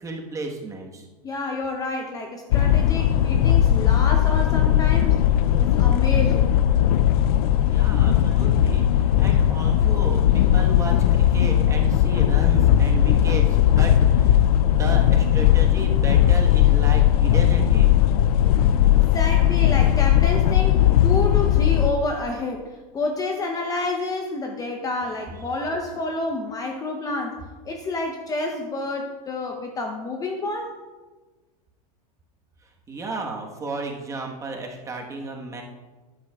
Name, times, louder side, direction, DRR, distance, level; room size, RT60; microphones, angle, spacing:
voice 1, 0.0-1.1 7.6-18.0 32.9-35.6, right 3 dB, 15° right, 1 dB, 1.2 m, -33 dB
voice 2, 1.2-5.2 5.6-6.6 18.9-30.8, left 2 dB, 20° left, 2 dB, 0.7 m, -29 dB
sound 1, 2.5-21.9, left 11 dB, 75° left, 0.4 m, -18 dB
12.5 x 10.5 x 2.3 m, 1.3 s
supercardioid pair, 145°, 20 cm